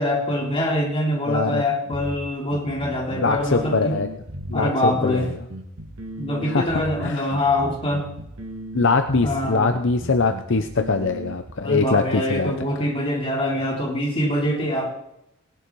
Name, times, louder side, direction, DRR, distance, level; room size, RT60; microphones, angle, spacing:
voice 1, 0.0-4.0 4.5-5.3 6.2-8.1 9.2-9.7 11.6-14.9, left 1 dB, 25° left, -1 dB, 3.3 m, -24 dB
voice 2, 1.3-1.6 3.2-4.1 4.5-5.3 6.4-6.7 7.0-7.3 8.7-12.5, left 4 dB, 60° left, 8 dB, 0.8 m, -22 dB
sound 1, 1.9-11.5, right 1 dB, 85° right, 1.9 m, -36 dB
18.5 x 10.5 x 4.7 m, 0.84 s
head